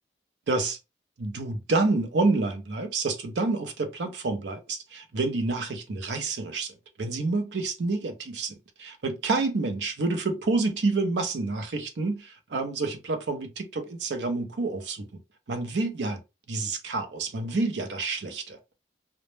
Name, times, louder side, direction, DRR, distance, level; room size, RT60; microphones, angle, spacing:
voice 1, 0.5-0.8 1.2-15.1 15.5-16.2 16.5-18.7, right 3 dB, 85° right, 0.5 m, -28 dB
2.0 x 2.0 x 3.0 m
head